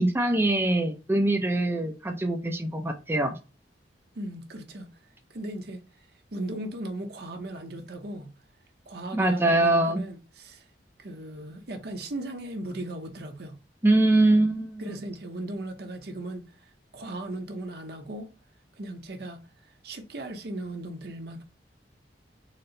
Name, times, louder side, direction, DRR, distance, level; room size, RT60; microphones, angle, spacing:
voice 1, 0.0-3.3 9.1-10.0 13.8-15.0, right 2 dB, 15° right, 0.5 m, -23 dB
voice 2, 4.1-4.9 5.3-5.8 6.3-8.3 8.9-10.6 11.0-13.6 14.8-18.3 18.8-19.4 19.8-21.4, right 1 dB, 65° right, 0.9 m, -37 dB
4.2 x 2.1 x 3.9 m
head